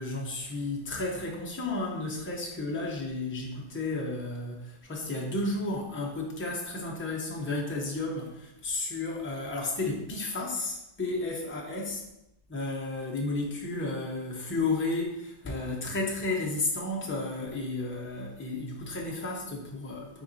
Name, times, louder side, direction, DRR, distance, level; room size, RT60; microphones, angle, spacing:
voice 1, 0.0-12.0 12.5-20.2, left 2 dB, 15° left, -3 dB, 0.6 m, -32 dB
4.1 x 3.7 x 2.6 m, 0.88 s
omnidirectional pair, 1.1 m